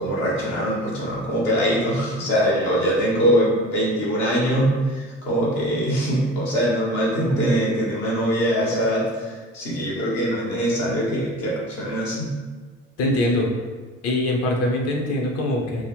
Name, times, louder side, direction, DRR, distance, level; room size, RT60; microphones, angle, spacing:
voice 1, 0.0-12.3, equal, 65° left, -5 dB, 1.1 m, -22 dB
voice 2, 13.0-13.5 14.0-15.8, left 1 dB, 45° left, 0 dB, 0.7 m, -22 dB
3.4 x 2.1 x 3.4 m, 1.4 s
figure-of-eight pair, 55°, 35 cm